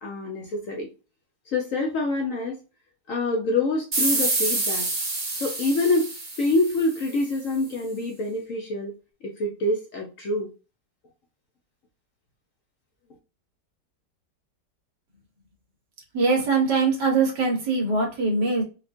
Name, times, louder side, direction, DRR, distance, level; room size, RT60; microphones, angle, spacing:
voice 1, 0.0-0.9 1.5-2.6 3.1-4.9 5.3-6.1 6.4-8.9 9.2-10.5, left 2 dB, 60° left, 1 dB, 0.9 m, -26 dB
sound 1, 3.9-7.2, right 3 dB, 40° right, 0.6 m, -27 dB
voice 2, 16.1-18.6, right 4 dB, 70° right, 0 dB, 1.9 m, -22 dB
4.3 x 2.5 x 2.5 m, 0.31 s
omnidirectional pair, 1.9 m